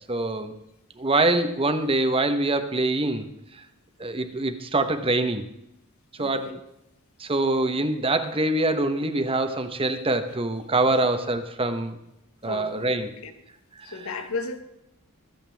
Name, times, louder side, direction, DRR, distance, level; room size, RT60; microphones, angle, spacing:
voice 1, 0.1-0.5 1.0-3.3 4.0-5.4 6.2-6.6 7.2-12.0 12.4-13.1, right 2 dB, 25° right, 8 dB, 1.1 m, -24 dB
voice 2, 6.2-6.6 10.9-11.0 12.4-13.3 13.8-14.6, left 3 dB, 70° left, 7 dB, 1.5 m, -35 dB
24.5 x 8.2 x 3.5 m, 0.85 s
head